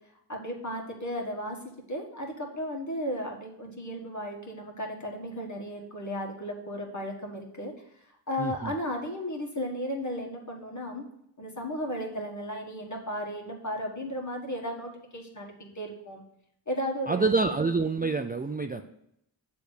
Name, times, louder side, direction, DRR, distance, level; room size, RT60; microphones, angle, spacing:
voice 1, 0.3-1.6 1.9-7.7 8.3-11.1 11.4-16.2 16.7-17.6 18.8-18.9, equal, 35° left, 0 dB, 1.7 m, -35 dB
voice 2, 8.4-8.7 17.1-18.8, right 4 dB, 20° right, 6 dB, 0.4 m, -27 dB
8.3 x 3.5 x 6.5 m, 0.75 s
wide cardioid pair, 75°, 47 cm